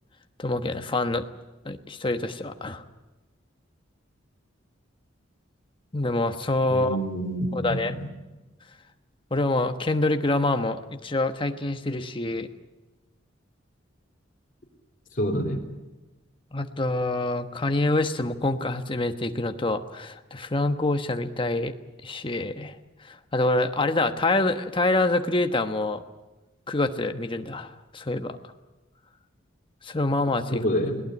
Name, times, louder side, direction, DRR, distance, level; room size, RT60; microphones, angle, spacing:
voice 1, 0.4-1.2 1.6-2.8 5.9-7.0 7.5-7.9 9.3-12.5 16.5-21.7 22.0-22.7 23.0-26.0 26.7-28.4 29.8-30.6, left 2 dB, 25° left, 7 dB, 1.2 m, -26 dB
voice 2, 6.7-8.1 15.2-15.6 30.5-31.0, equal, 45° left, 2 dB, 3.8 m, -27 dB
21.5 x 18.0 x 9.7 m, 1.1 s
head